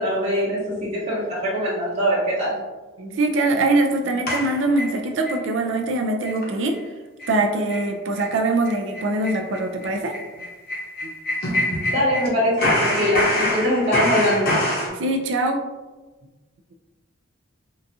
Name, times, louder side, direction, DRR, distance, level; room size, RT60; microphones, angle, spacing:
voice 1, 0.0-2.6 11.9-14.5, equal, 35° right, -9 dB, 1.0 m, -22 dB
voice 2, 3.0-6.7 7.3-10.5 11.0-11.1 14.9-15.6, right 2 dB, 65° right, 3 dB, 0.4 m, -23 dB
sound 1, 4.3-5.4 5.8-5.9 6.2-6.5 6.7-6.8 7.2-7.4 7.7-7.9 8.2-8.3 8.6-12.3 12.6-14.9, left 1 dB, 50° left, 0.8 m, -25 dB
3.8 x 2.3 x 2.7 m, 1.2 s
head